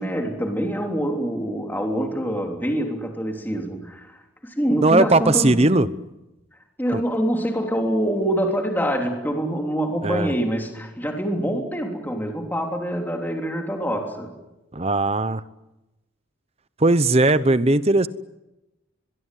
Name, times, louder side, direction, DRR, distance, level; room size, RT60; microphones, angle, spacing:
voice 1, 0.0-4.2 4.4-5.8 6.8-14.3, equal, 10° left, 2 dB, 3.4 m, -25 dB
voice 2, 4.8-5.9 6.9-7.0 10.0-10.3 14.7-15.4 16.8-18.1, right 2 dB, 30° right, 14 dB, 0.9 m, -18 dB
23.0 x 23.0 x 9.3 m, 0.98 s
head